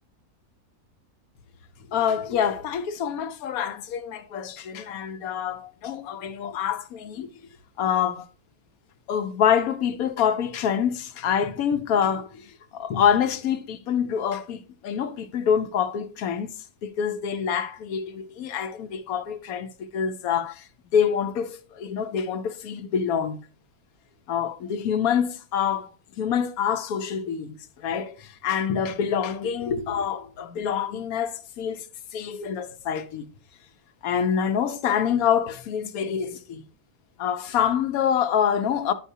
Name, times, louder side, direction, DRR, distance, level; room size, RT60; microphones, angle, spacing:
voice 1, 1.9-7.3 7.8-8.3 9.1-16.5 16.8-23.4 24.3-31.9 32.1-33.3 34.0-36.6 37.2-38.9, left 8 dB, 75° left, 1.1 m, -26 dB
9.9 x 5.7 x 2.7 m
omnidirectional pair, 1.5 m